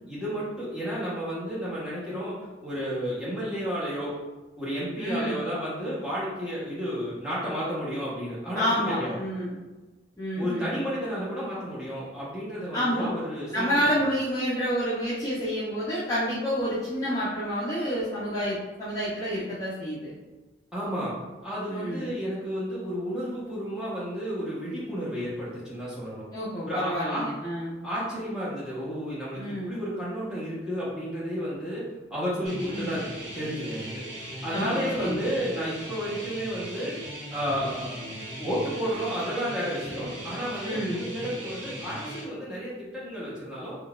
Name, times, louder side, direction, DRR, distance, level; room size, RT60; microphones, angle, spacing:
voice 1, 0.1-4.1 4.6-8.7 9.0-9.1 10.3-14.1 20.7-21.1 21.4-26.2 26.6-27.3 27.8-34.0 34.4-36.9 37.3-37.9 38.4-43.7, equal, 5° right, -8 dB, 0.9 m, -32 dB
voice 2, 5.0-5.4 8.5-9.6 10.2-10.7 12.7-13.1 13.5-20.1 21.7-22.1 26.3-27.7 29.4-29.8 32.7-33.0 34.5-35.2 40.6-41.0, equal, 20° left, -10 dB, 0.5 m, -29 dB
sound 1, 32.4-42.2, equal, 85° right, 1.0 m, -39 dB
3.8 x 2.3 x 2.3 m, 1.2 s
head